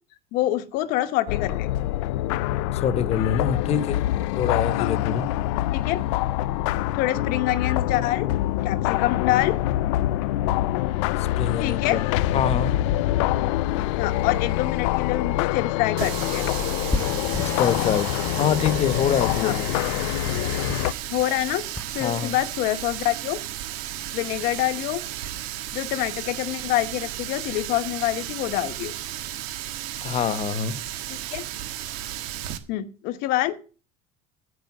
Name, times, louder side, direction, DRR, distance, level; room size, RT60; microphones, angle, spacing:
voice 1, 0.3-1.7 4.8-4.9 5.7-6.0 6.9-8.3 8.6-9.6 11.6-12.0 14.0-16.5 19.4-19.6 21.1-21.7 21.9-23.4 24.1-25.0 25.7-28.9 31.1-31.4 32.7-33.6, left 15 dB, 70° left, 1.0 m, -26 dB
sound 1, 1.3-20.9, left 15 dB, 90° left, 0.5 m, -25 dB
voice 2, 2.7-4.0 4.4-5.3 11.2-12.0 12.3-12.8 17.6-18.1 18.4-19.7 22.0-22.4 30.0-30.8, left 8 dB, 45° left, 1.1 m, -25 dB
Water tap faucet, 16.0-32.6, right 12 dB, 80° right, 1.5 m, -34 dB
sound 2, 16.9-22.2, left 3 dB, 20° left, 1.1 m, -35 dB
9.6 x 8.8 x 7.2 m
supercardioid pair, 105°, 15 cm